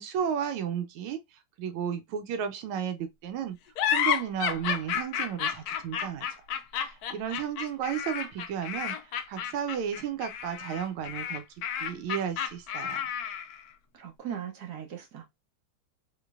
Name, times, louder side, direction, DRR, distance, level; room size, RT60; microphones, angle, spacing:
voice 1, 0.0-3.6 3.9-6.3 6.8-11.4 11.8-13.0, right 8 dB, 90° right, 1.5 m, -33 dB
sound 1, 3.8-13.6, left 9 dB, 85° left, 0.8 m, -31 dB
voice 2, 13.9-15.3, right 9 dB, 55° right, 1.4 m, -39 dB
3.8 x 3.2 x 2.3 m
omnidirectional pair, 2.3 m